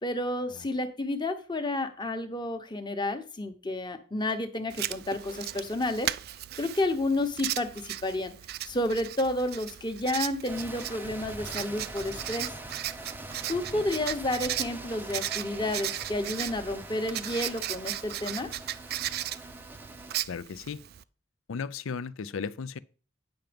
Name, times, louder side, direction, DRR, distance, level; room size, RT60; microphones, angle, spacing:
voice 1, 0.0-6.1 6.6-8.3 8.7-12.5 13.5-18.5, left 1 dB, 20° left, 1.0 m, -31 dB
Writing, 4.7-21.0, right 13 dB, 50° right, 0.3 m, -37 dB
sound 1, 10.5-20.2, right 2 dB, 10° right, 0.6 m, -43 dB
voice 2, 20.3-20.8 21.5-22.8, left 5 dB, 75° left, 0.5 m, -35 dB
9.0 x 5.8 x 5.2 m
head